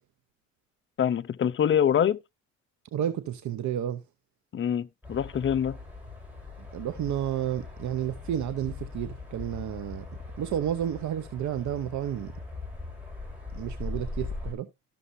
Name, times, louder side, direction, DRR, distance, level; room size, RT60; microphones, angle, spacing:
voice 1, 1.0-2.2 4.5-5.8, left 9 dB, 40° left, 0.6 m, -25 dB
voice 2, 2.9-4.0 6.6-10.1 10.4-12.3 13.5-14.7, right 10 dB, 70° right, 0.8 m, -31 dB
sound 1, 5.0-14.5, left 3 dB, 5° right, 5.2 m, -40 dB
12.5 x 6.8 x 2.6 m
cardioid pair, 90°, 30 cm